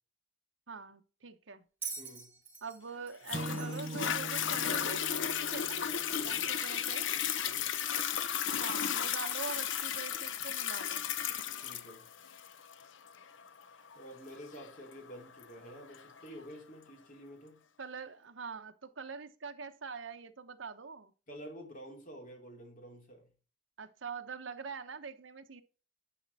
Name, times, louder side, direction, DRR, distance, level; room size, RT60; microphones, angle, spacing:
voice 1, 0.7-1.6 2.6-5.8 6.2-7.1 8.5-11.1 17.8-21.1 23.8-25.6, right 5 dB, 90° right, 1.0 m, -44 dB
Bell, 1.8-5.0 6.1-6.3, right 6 dB, 10° right, 4.7 m, -46 dB
voice 2, 2.0-2.3 6.1-6.5 7.4-7.7 11.5-12.1 13.9-17.6 21.3-23.3, equal, 45° left, 3.3 m, -50 dB
Toilet flush, 3.3-16.3 16.9-17.0, left 9 dB, 80° left, 0.7 m, -35 dB
Acoustic guitar / Strum, 3.3-6.6, right 1 dB, 35° right, 0.7 m, -43 dB
11.0 x 5.2 x 4.1 m
head